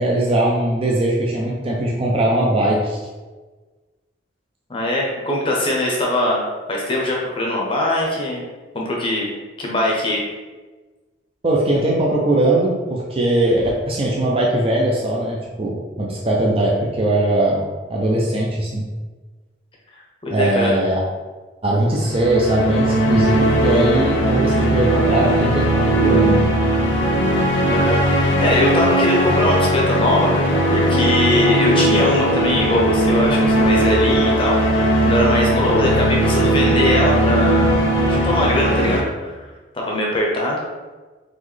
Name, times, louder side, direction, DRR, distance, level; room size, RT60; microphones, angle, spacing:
voice 1, 0.0-3.0 11.4-18.8 20.3-21.0 21.6-26.5, right 1 dB, 30° right, -2 dB, 0.5 m, -20 dB
voice 2, 4.7-6.4 6.7-8.5 8.7-9.3 9.6-10.2 20.2-20.7 27.7-37.7 38.0-39.4 39.7-40.6, left 1 dB, 25° left, -2 dB, 0.7 m, -21 dB
sound 1, 22.0-39.0, right 1 dB, 80° left, 0.8 m, -18 dB
4.0 x 3.1 x 3.2 m, 1.3 s
head